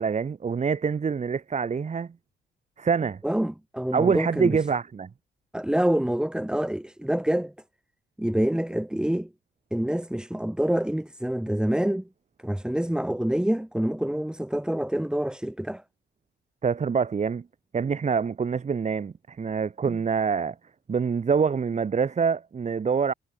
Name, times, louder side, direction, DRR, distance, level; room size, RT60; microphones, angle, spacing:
voice 1, 0.0-2.1 2.8-3.2 3.9-5.1 16.6-17.4 17.7-20.5 20.9-23.1, right 6 dB, 35° right, 1.5 m, -25 dB
voice 2, 3.2-4.6 5.5-7.5 8.2-9.3 9.7-12.1 12.4-15.8 19.9-20.0, right 1 dB, 5° right, 2.2 m, -26 dB
cardioid pair, 90°, 20 cm